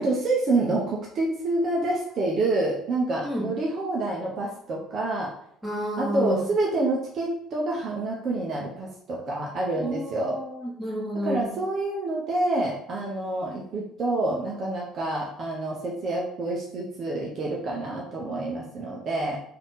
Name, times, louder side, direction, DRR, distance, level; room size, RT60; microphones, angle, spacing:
voice 1, 0.0-5.3 6.0-10.4 11.2-19.4, right 2 dB, 45° right, -2 dB, 0.8 m, -27 dB
voice 2, 5.6-6.5 9.8-11.5, equal, 5° right, -4 dB, 1.6 m, -31 dB
3.4 x 2.8 x 4.0 m, 0.69 s
hypercardioid pair, 60°, 0 cm